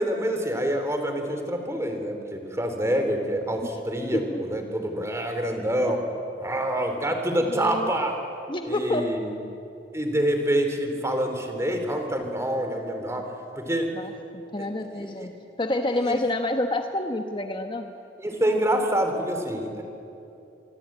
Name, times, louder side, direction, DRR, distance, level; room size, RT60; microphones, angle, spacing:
voice 1, 0.0-6.0 6.4-8.2 8.6-9.4 9.9-13.9 14.6-14.7 14.9-15.3 16.0-16.1 18.2-19.8, right 1 dB, 15° right, 5 dB, 3.3 m, -26 dB
voice 2, 7.5-7.9 8.5-9.0 13.9-15.3 15.6-17.9, left 1 dB, 25° left, 5 dB, 1.1 m, -28 dB
26.5 x 24.0 x 8.7 m, 2.8 s
head